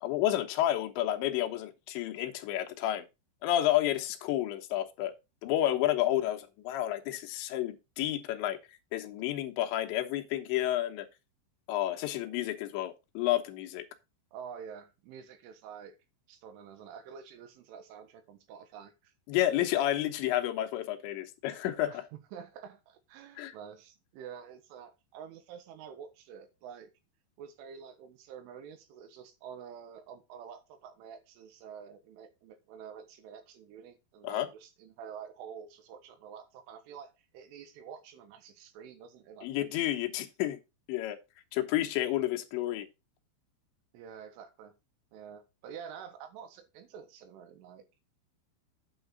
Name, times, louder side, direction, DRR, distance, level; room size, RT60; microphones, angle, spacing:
voice 1, 0.0-3.0 3.4-5.1 5.4-8.6 8.9-11.1 11.7-13.8 19.3-22.0 23.4-23.5 34.2-34.5 39.4-40.6 40.9-41.2 41.5-42.9, left 13 dB, 75° left, 3.2 m, -30 dB
voice 2, 14.3-16.0 16.3-19.1 21.9-26.9 27.4-39.9 40.2-40.5 43.9-44.8 45.1-47.9, right 7 dB, 85° right, 3.8 m, -48 dB
9.0 x 6.9 x 3.9 m
omnidirectional pair, 5.5 m